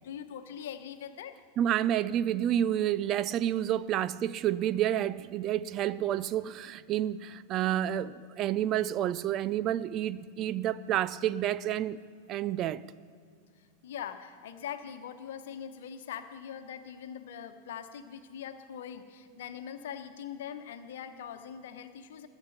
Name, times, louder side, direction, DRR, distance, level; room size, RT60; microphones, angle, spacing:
voice 1, 0.0-1.3 13.6-22.3, left 8 dB, 55° left, 1.1 m, -42 dB
voice 2, 1.6-12.0 12.3-12.8, right 11 dB, 35° right, 0.4 m, -29 dB
21.0 x 9.7 x 4.3 m
figure-of-eight pair, 90°, 0 cm